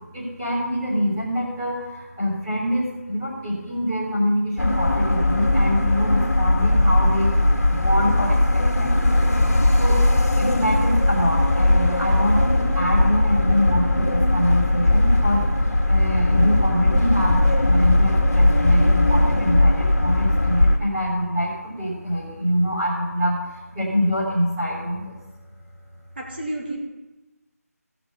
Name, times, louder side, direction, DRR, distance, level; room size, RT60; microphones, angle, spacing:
voice 1, 0.0-7.3 7.7-9.2 9.8-10.0 10.4-25.2, equal, 10° right, -10 dB, 3.4 m, -25 dB
sound 1, 4.6-20.8, left 1 dB, 70° left, 2.1 m, -19 dB
voice 2, 26.2-26.8, right 1 dB, 35° right, -2 dB, 2.6 m, -30 dB
17.0 x 6.2 x 5.5 m, 1.1 s
figure-of-eight pair, 175°, 9 cm